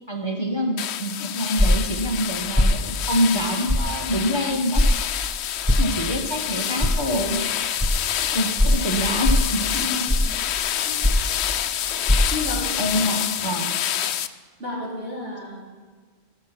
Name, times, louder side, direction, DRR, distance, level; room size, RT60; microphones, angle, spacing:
voice 1, 0.1-4.8 5.8-7.4 8.3-9.6 12.8-13.7, equal, 25° left, 0 dB, 1.1 m, -26 dB
sound 1, 0.8-14.3, left 10 dB, 75° left, 0.8 m, -27 dB
sound 2, 1.6-1.9 2.5-2.8 3.7-3.9 4.7-4.9 5.6-5.9 6.8-6.9 7.8-7.9 8.6-8.8 9.2-9.5 10.1-10.4 11.0-11.3 12.0-12.2, left 1 dB, 10° right, 0.9 m, -18 dB
voice 2, 9.7-10.2 10.8-11.4 12.3-12.9 14.6-15.6, left 1 dB, 65° right, -5 dB, 3.6 m, -32 dB
18.0 x 6.7 x 5.8 m, 1.5 s
omnidirectional pair, 1.1 m